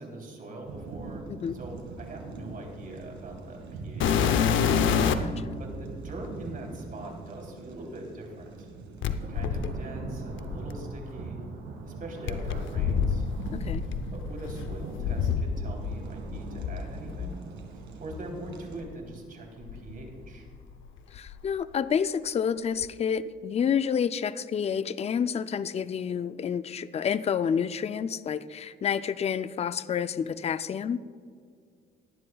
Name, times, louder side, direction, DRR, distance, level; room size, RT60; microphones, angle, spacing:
voice 1, 0.0-4.8 5.6-8.7 9.3-11.4 11.8-13.3 14.1-17.4 17.7-20.5, right 2 dB, 45° right, 0 dB, 3.3 m, -42 dB
sound 1, 0.7-18.8, right 4 dB, 80° right, 1.8 m, -42 dB
sound 2, 4.0-5.4 6.3-6.4 9.0-11.1 12.3-16.0 16.3-17.3 18.1-18.2 18.8-18.9 19.6-20.7 21.0-21.5 22.8-22.9, left 7 dB, 75° left, 0.7 m, -28 dB
voice 2, 13.5-13.9 21.1-31.0, left 7 dB, 30° left, 14 dB, 0.4 m, -29 dB
18.0 x 11.5 x 2.3 m, 2.2 s
cardioid pair, 90°, 20 cm